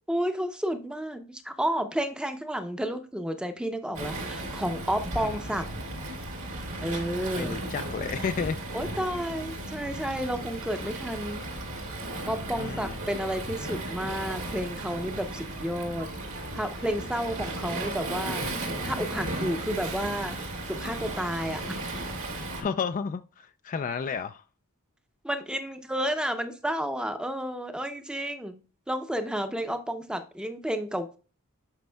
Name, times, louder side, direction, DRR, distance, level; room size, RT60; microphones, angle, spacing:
voice 1, 0.1-5.7 6.8-7.6 8.7-11.4 12.3-16.1 16.5-20.4 20.7-21.8 25.2-28.5 28.9-31.2, equal, 5° right, 0.6 m, -31 dB
Waves surf, 3.9-22.6, right 2 dB, 65° right, 2.1 m, -35 dB
voice 2, 7.3-8.6 12.6-13.0 22.6-24.4, left 6 dB, 35° left, 0.3 m, -32 dB
11.5 x 5.2 x 2.3 m
head